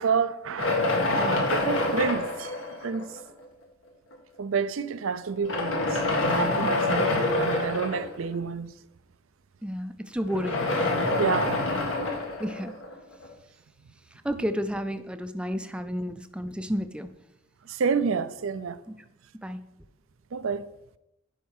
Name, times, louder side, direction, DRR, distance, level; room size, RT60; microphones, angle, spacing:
voice 1, 0.0-3.1 4.4-8.7 11.2-11.6 17.6-18.8 20.3-20.7, right 5 dB, 85° right, 0.5 m, -29 dB
sound 1, 0.6-3.3 4.1-4.2 5.3-8.3 10.2-13.3, left 2 dB, 75° left, 1.7 m, -27 dB
voice 2, 9.6-10.6 12.4-12.7 14.2-17.1 19.4-19.6, equal, 5° right, 0.4 m, -31 dB
10.0 x 5.4 x 4.8 m
head